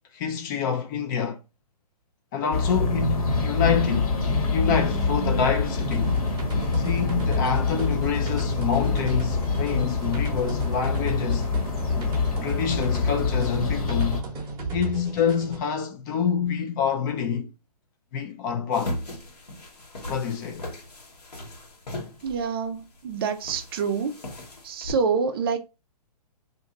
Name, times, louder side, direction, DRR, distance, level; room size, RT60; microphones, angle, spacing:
voice 1, 0.1-1.4 2.3-4.1 4.5-6.2 6.7-11.5 12.4-14.2 14.7-17.5 18.1-19.0 20.1-20.7, left 7 dB, 30° left, 0.5 m, -27 dB
sound 1, 2.5-14.2, left 4 dB, 65° left, 1.4 m, -25 dB
sound 2, 5.8-15.6, right 4 dB, 20° right, 1.0 m, -37 dB
sound 3, 18.7-24.9, left 1 dB, 90° left, 1.3 m, -38 dB
voice 2, 22.2-24.2 24.6-25.6, right 5 dB, 40° right, 0.4 m, -27 dB
2.8 x 2.6 x 3.7 m
hypercardioid pair, 135°, 20 cm